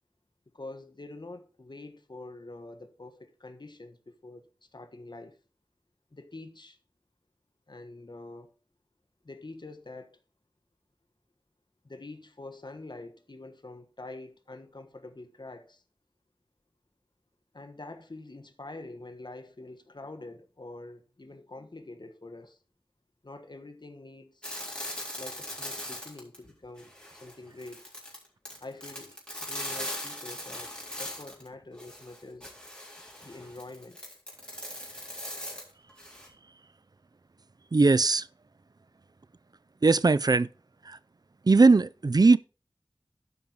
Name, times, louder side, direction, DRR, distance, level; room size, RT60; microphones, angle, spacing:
voice 1, 0.5-5.4 6.1-6.8 7.7-8.5 9.2-10.2 11.8-15.8 17.5-22.6 23.2-24.4 25.2-26.9 27.2-27.9 28.6-30.7 31.0-32.5 33.2-34.0, left 2 dB, 55° left, 1.3 m, -45 dB
sound 1, 24.4-26.5 26.8-31.5 31.8-36.3, left 1 dB, 10° left, 3.7 m, -40 dB
voice 2, 37.7-38.3 39.8-40.5 40.9-41.0 41.5-42.4, right 3 dB, 50° right, 0.4 m, -20 dB
12.0 x 5.5 x 4.6 m
wide cardioid pair, 50°, 9 cm